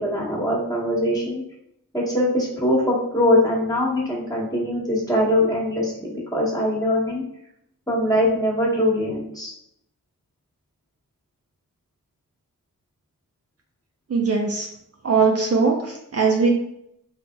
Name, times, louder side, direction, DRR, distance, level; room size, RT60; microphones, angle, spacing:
voice 1, 0.0-1.4 1.9-7.2 7.9-9.5, left 1 dB, 10° left, -4 dB, 1.1 m, -22 dB
voice 2, 14.1-14.7 15.0-16.5, right 4 dB, 45° right, 0 dB, 0.5 m, -20 dB
3.2 x 2.8 x 2.2 m, 0.78 s
wide cardioid pair, 55°, 34 cm